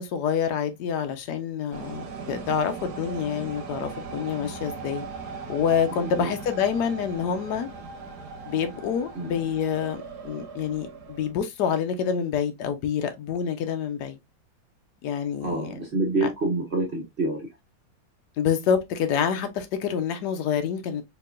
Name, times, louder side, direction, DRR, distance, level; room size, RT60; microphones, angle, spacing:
voice 1, 0.0-5.0 5.5-7.7 8.5-14.2 15.0-15.8 18.4-21.0, left 7 dB, 65° left, 1.2 m, -27 dB
sound 1, 1.7-11.3, right 4 dB, 60° right, 1.4 m, -39 dB
voice 2, 5.9-6.3 9.1-9.4 15.4-17.5, right 2 dB, 40° right, 1.0 m, -27 dB
4.6 x 3.0 x 2.3 m
omnidirectional pair, 2.1 m